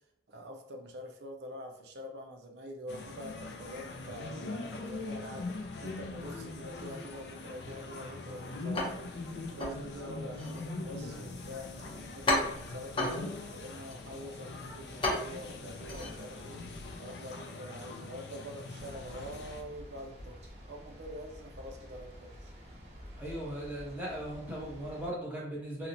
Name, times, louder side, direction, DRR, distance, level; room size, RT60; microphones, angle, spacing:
voice 1, 0.3-5.5 5.8-9.2 9.5-11.7 12.1-16.6 17.0-22.5, equal, 75° right, 3 dB, 0.5 m, -45 dB
sound 1, 2.9-19.6, left 3 dB, 75° left, 0.4 m, -42 dB
sound 2, 8.7-17.0, left 2 dB, 30° left, 0.6 m, -36 dB
sound 3, 18.7-25.1, equal, 40° right, 0.9 m, -49 dB
voice 2, 23.2-25.9, right 1 dB, 10° right, -5 dB, 0.9 m, -38 dB
2.7 x 2.1 x 3.8 m, 0.69 s
head